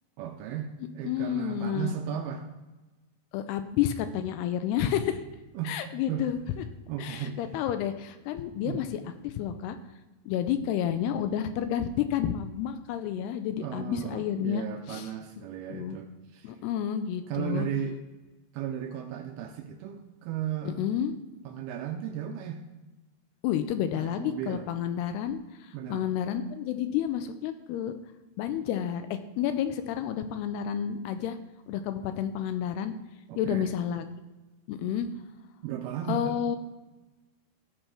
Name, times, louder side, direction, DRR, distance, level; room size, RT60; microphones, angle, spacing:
voice 1, 0.2-2.5 5.6-5.8 6.1-6.3 6.9-7.4 8.6-8.9 13.6-16.5 17.3-18.0 18.5-21.0 21.5-22.6 23.9-24.6 25.7-26.1 33.3-33.7 35.6-36.4, right 9 dB, 80° right, 5 dB, 2.3 m, -35 dB
voice 2, 1.0-2.0 3.3-5.2 5.7-6.4 7.0-9.8 10.3-15.1 15.7-16.0 16.4-17.7 20.7-21.1 23.4-27.9 28.4-31.4 31.7-32.9 33.4-34.1 34.7-35.1 36.1-36.6, left 9 dB, 85° left, 9 dB, 2.5 m, -30 dB
13.0 x 6.8 x 4.5 m, 1.1 s
omnidirectional pair, 4.9 m